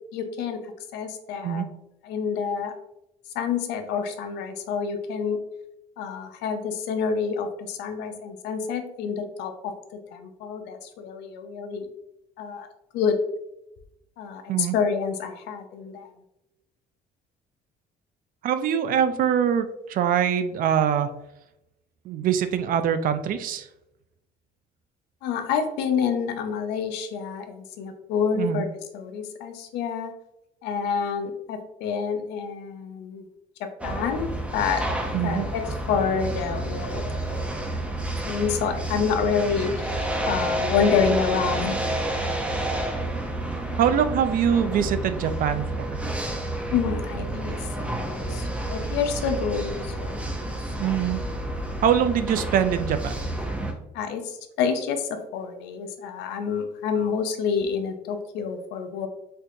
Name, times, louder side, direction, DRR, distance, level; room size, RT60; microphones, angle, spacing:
voice 1, 0.1-0.6 0.9-1.6 2.0-2.7 3.3-5.4 6.0-9.7 10.1-11.9 12.4-12.7 12.9-13.2 14.2-16.1 25.2-28.7 28.9-30.1 30.6-33.3 33.6-34.8 35.2-35.6 35.9-37.0 37.4-37.8 38.2-40.0 40.3-41.8 46.7-50.2 53.9-59.1, left 6 dB, 90° left, 6 dB, 0.5 m, -28 dB
voice 2, 18.4-21.1 22.1-23.7 28.4-28.7 35.1-35.4 43.8-46.0 50.8-51.2 51.8-53.1, right 8 dB, 55° right, 10 dB, 0.4 m, -23 dB
sound 1, 33.8-53.7, right 1 dB, 5° right, 0.6 m, -30 dB
4.4 x 2.5 x 2.6 m, 0.87 s
cardioid pair, 110°, 17 cm